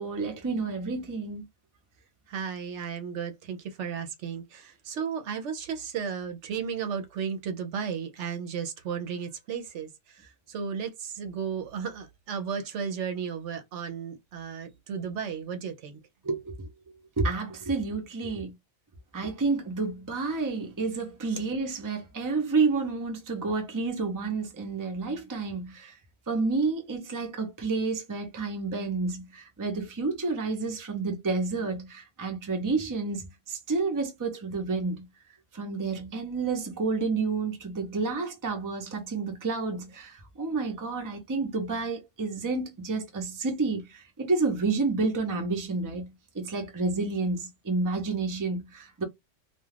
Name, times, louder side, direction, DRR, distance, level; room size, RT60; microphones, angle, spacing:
voice 1, 0.0-1.4 16.2-16.7 17.2-18.5 19.1-25.9 26.3-35.1 35.5-49.0, right 4 dB, 25° right, 0.5 m, -30 dB
voice 2, 2.3-16.0, right 7 dB, 75° right, 0.9 m, -34 dB
2.4 x 2.3 x 3.2 m
omnidirectional pair, 1.3 m